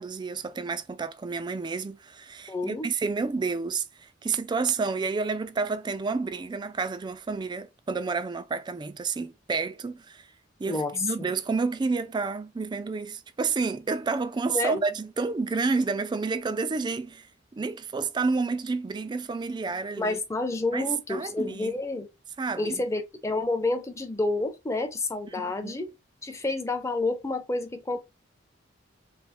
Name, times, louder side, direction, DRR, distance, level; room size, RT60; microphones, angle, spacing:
voice 1, 0.0-10.3 10.6-20.2 20.7-21.7 22.4-22.8 25.4-25.9, right 4 dB, 25° right, 0.3 m, -30 dB
voice 2, 2.5-2.9 10.7-11.3 14.5-14.8 20.0-22.1 22.6-25.9 26.2-28.0, left 2 dB, 15° left, 0.6 m, -29 dB
3.3 x 2.1 x 4.2 m
head